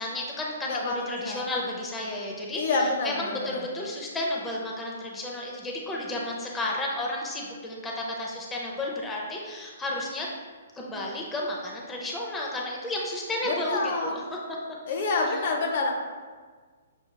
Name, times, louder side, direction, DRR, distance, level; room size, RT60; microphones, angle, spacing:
voice 1, 0.0-10.3 10.7-14.2 15.2-15.4, left 1 dB, 10° left, -3 dB, 0.6 m, -32 dB
voice 2, 0.6-1.4 2.5-3.7 13.5-14.2 14.9-15.9, left 3 dB, 55° left, 1 dB, 0.6 m, -28 dB
6.2 x 2.9 x 2.2 m, 1.5 s
hypercardioid pair, 130°, 0 cm